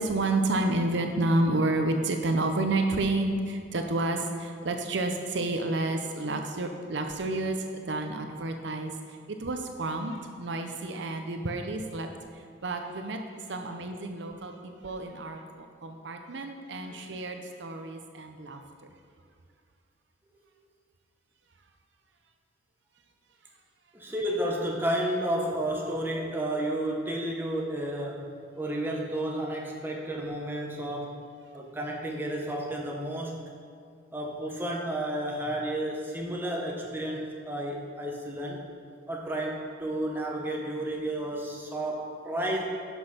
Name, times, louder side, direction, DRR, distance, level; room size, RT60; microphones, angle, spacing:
voice 1, 0.0-12.1 12.6-13.2 13.5-18.6, right 2 dB, 65° right, 5 dB, 0.7 m, -30 dB
voice 2, 23.9-31.2 31.5-33.5 34.1-38.7 39.1-42.6, right 1 dB, 10° right, -1 dB, 1.1 m, -32 dB
10.0 x 6.3 x 5.7 m, 2.2 s
head